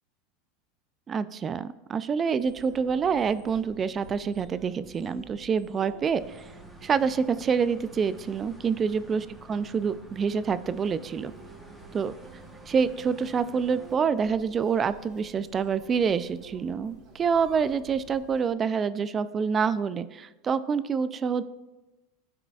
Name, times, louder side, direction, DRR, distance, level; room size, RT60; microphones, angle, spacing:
voice 1, 1.1-6.4 6.8-11.3 11.9-12.1 12.7-21.4, right 6 dB, 25° right, 14 dB, 0.3 m, -27 dB
sound 1, 2.4-18.5, right 4 dB, 50° right, 1.3 m, -50 dB
sound 2, 6.1-14.0, right 1 dB, 10° right, 1.0 m, -50 dB
13.0 x 4.9 x 2.3 m, 1.1 s
supercardioid pair, 130°, 0 cm